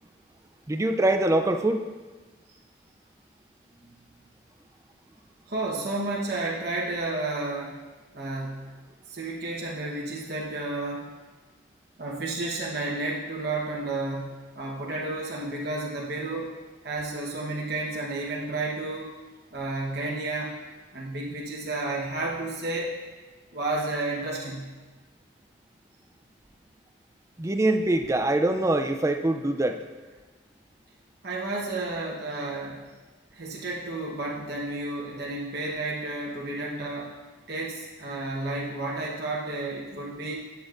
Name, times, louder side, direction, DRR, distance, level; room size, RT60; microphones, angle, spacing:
voice 1, 0.7-1.8 27.4-29.8, right 1 dB, 15° right, 7 dB, 0.3 m, -23 dB
voice 2, 5.5-7.8 8.1-8.7 9.1-11.1 12.0-16.5 16.8-19.2 19.5-20.6 20.9-23.0 23.5-24.7 31.2-32.9 33.3-37.2 37.5-40.4, right 2 dB, 50° right, -4 dB, 1.1 m, -31 dB
11.0 x 7.2 x 2.5 m, 1.3 s
head